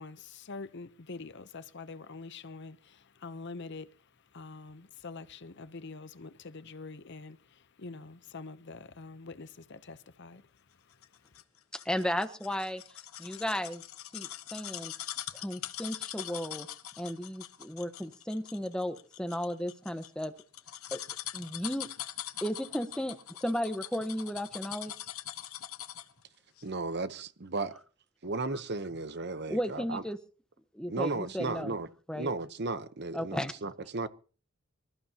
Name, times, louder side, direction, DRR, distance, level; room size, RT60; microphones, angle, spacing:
voice 1, 0.0-3.9 4.3-10.4, left 3 dB, 50° left, 0.8 m, -45 dB
sound 1, 11.0-26.2 26.6-26.7, left 12 dB, 75° left, 1.2 m, -42 dB
voice 2, 11.7-12.8 13.2-13.8 14.1-14.9 15.3-16.7 17.0-20.3 20.9-21.0 21.3-21.9 22.4-24.9 29.5-30.2 30.7-31.7 32.1-32.3 33.1-33.5, equal, 5° left, 1.1 m, -34 dB
voice 3, 26.6-27.7 28.2-30.0 30.9-31.9 32.1-34.1, right 3 dB, 50° right, 0.9 m, -35 dB
25.5 x 14.0 x 2.9 m
head